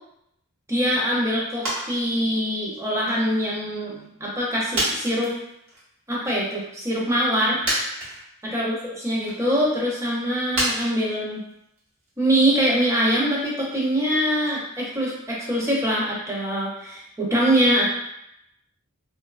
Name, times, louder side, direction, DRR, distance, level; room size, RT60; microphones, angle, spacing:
voice 1, 0.7-5.3 6.1-7.6 8.4-11.4 12.2-17.9, equal, 15° right, -5 dB, 0.5 m, -23 dB
sound 1, 1.6-2.0 2.2-3.4 3.9-4.0 4.7-5.8 6.2-6.4 7.3-7.4 7.6-8.5 8.9-9.5 10.5-14.6 14.9-15.0, right 1 dB, 65° right, 0.9 m, -30 dB
2.6 x 2.1 x 2.3 m, 0.79 s
head